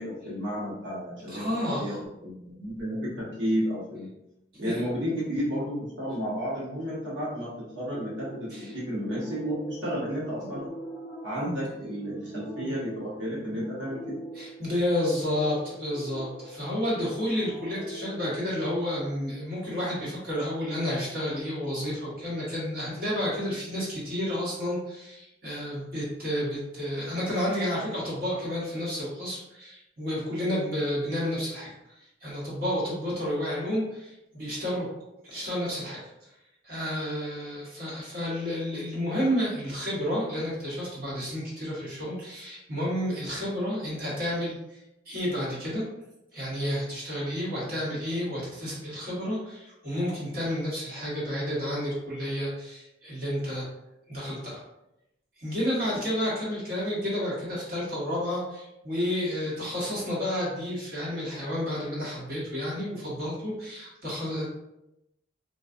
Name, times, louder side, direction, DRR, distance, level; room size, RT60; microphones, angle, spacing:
voice 1, 0.0-4.1 4.6-10.7 11.2-14.2, equal, 80° right, -8 dB, 1.1 m, -32 dB
voice 2, 1.3-2.0 4.5-4.7 8.5-8.7 10.4-10.5 11.4-11.6 14.3-31.7 32.2-34.9 35.2-36.0 36.6-44.8 45.0-45.8 46.3-53.7 54.1-54.6 55.4-64.5, equal, 50° right, -7 dB, 1.3 m, -31 dB
sound 1, 7.9-19.2, equal, 10° right, 1.0 m, -44 dB
3.9 x 2.4 x 2.5 m, 0.88 s
head